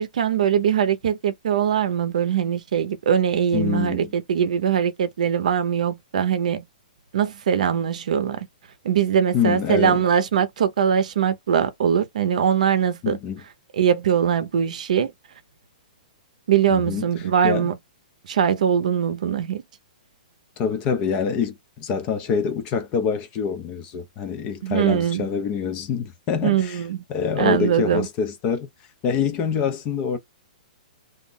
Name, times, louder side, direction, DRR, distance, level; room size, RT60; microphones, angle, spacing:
voice 1, 0.0-6.6 7.1-8.5 8.8-13.2 13.7-15.1 16.5-17.8 18.2-19.6 24.6-25.3 26.4-27.0 27.4-28.1, right 8 dB, 55° right, 0.6 m, -21 dB
voice 2, 3.5-4.1 9.3-10.0 13.0-13.4 16.7-17.1 17.4-17.7 20.6-26.8 27.1-28.7 29.0-30.2, left 6 dB, 20° left, 0.3 m, -25 dB
2.4 x 2.0 x 3.6 m
hypercardioid pair, 175°, 5 cm